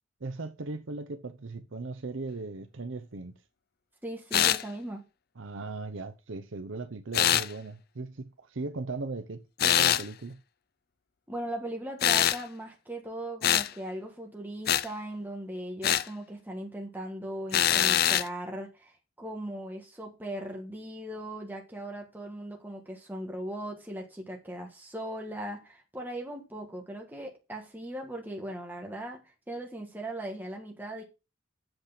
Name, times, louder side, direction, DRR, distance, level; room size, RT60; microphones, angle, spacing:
voice 1, 0.2-3.4 5.4-10.4, right 3 dB, 65° right, 0.7 m, -38 dB
voice 2, 4.0-5.0 11.3-31.0, right 1 dB, 10° right, 1.6 m, -38 dB
sound 1, 4.3-4.6 7.1-7.5 9.6-10.0 12.0-12.4 13.4-13.7 14.7-14.9 15.8-16.1 17.5-18.3, left 10 dB, 50° left, 0.5 m, -23 dB
8.0 x 6.7 x 5.9 m
head